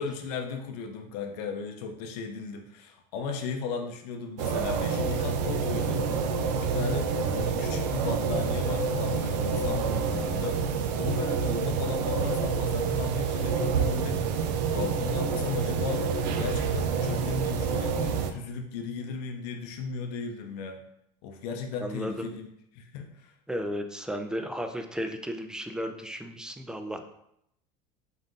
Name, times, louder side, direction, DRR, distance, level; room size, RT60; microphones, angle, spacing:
voice 1, 0.0-6.3 6.6-10.6 11.0-14.2 14.7-16.0 16.4-20.8 21.2-22.5 22.7-23.3, left 5 dB, 75° left, 4 dB, 0.6 m, -36 dB
sound 1, 4.4-18.3, right 5 dB, 85° right, 0.5 m, -28 dB
voice 2, 21.8-22.3 23.5-27.1, equal, 5° right, 6 dB, 0.3 m, -34 dB
3.9 x 2.6 x 3.6 m, 0.77 s
supercardioid pair, 115°, 21 cm